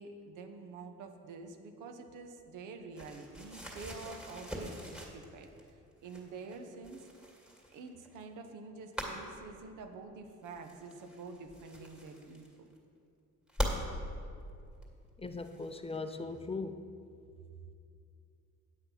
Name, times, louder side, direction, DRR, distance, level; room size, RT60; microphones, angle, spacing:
voice 1, 0.0-5.5 6.0-7.1 7.7-12.7, right 4 dB, 85° right, 5 dB, 1.1 m, -47 dB
sound 1, 2.9-5.7 6.0-8.2 8.9-9.2 10.4-12.8 13.5-13.8 14.8-14.9 15.3-16.1, equal, ahead, 2.3 m, -42 dB
voice 2, 15.2-16.8, left 3 dB, 20° left, 9 dB, 0.5 m, -39 dB
8.7 x 8.1 x 5.7 m, 2.4 s
cardioid pair, 90°, 30 cm